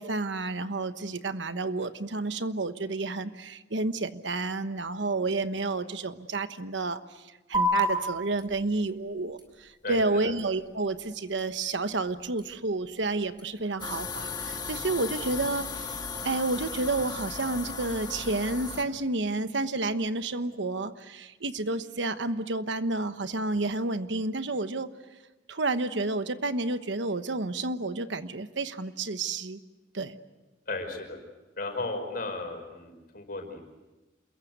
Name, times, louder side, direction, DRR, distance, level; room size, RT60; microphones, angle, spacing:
voice 1, 0.0-7.2 7.5-16.0 16.2-24.9 25.5-29.6 29.9-30.2, right 3 dB, 75° right, 11 dB, 1.1 m, -30 dB
sound 1, 7.5-14.5, equal, 25° right, 4.6 m, -35 dB
voice 2, 9.8-10.4 30.7-31.2 31.6-33.7, left 2 dB, 50° left, 4 dB, 5.3 m, -35 dB
sound 2, 13.8-18.8, left 5 dB, 25° left, 1.9 m, -36 dB
28.0 x 22.0 x 8.1 m, 1.1 s
head